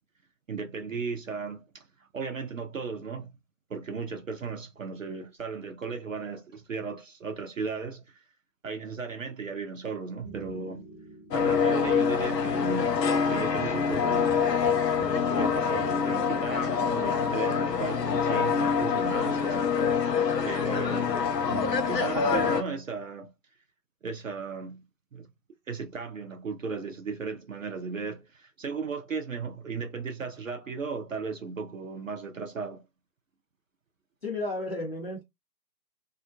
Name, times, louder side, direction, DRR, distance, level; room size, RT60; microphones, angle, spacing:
voice 1, 0.5-1.9 2.1-3.3 3.7-8.2 8.6-10.9 11.3-13.0 13.2-14.4 15.0-19.7 20.4-21.2 21.5-21.6 21.9-23.3 24.0-24.8 25.1-25.3 25.7-32.8, right 5 dB, 55° right, 0.5 m, -36 dB
sound 1, 10.2-22.5, right 1 dB, 10° right, 0.6 m, -43 dB
sound 2, 11.3-22.6, left 6 dB, 80° left, 0.6 m, -26 dB
voice 2, 34.2-35.2, left 2 dB, 40° left, 0.6 m, -32 dB
2.3 x 2.0 x 2.6 m
figure-of-eight pair, 140°, 49 cm